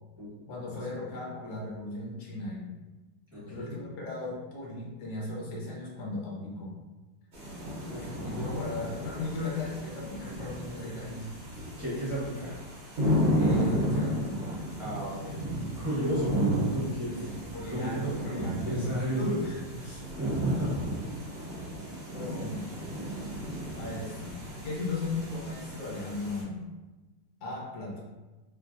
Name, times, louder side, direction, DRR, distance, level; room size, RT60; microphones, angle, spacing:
voice 1, 0.5-2.7 3.5-6.7 7.9-11.3 13.3-14.5 17.5-19.6 22.1-22.8 23.7-26.7 27.4-28.0, left 2 dB, 70° left, -3 dB, 0.9 m, -36 dB
voice 2, 3.3-3.7 8.0-8.1 11.8-12.5 14.8-15.4 15.7-19.5 19.8-20.9, equal, 5° right, -11 dB, 0.8 m, -33 dB
sound 1, 7.3-26.4, equal, 55° right, 0.7 m, -33 dB
3.2 x 2.6 x 2.4 m, 1.2 s
omnidirectional pair, 2.3 m